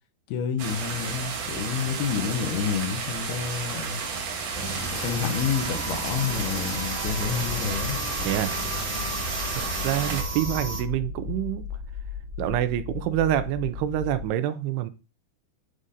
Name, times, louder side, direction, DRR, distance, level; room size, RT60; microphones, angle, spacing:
voice 1, 0.3-4.0 4.9-8.0, left 7 dB, 80° left, 2.6 m, -29 dB
sound 1, 0.6-10.2, right 5 dB, 65° right, 2.2 m, -32 dB
sound 2, 4.5-10.8, right 1 dB, 10° left, 0.4 m, -33 dB
sound 3, 7.0-14.3, left 7 dB, 40° right, 0.6 m, -37 dB
voice 2, 8.2-8.7 9.5-11.6 12.4-14.9, right 12 dB, 85° right, 2.6 m, -27 dB
9.7 x 3.7 x 2.6 m
omnidirectional pair, 4.6 m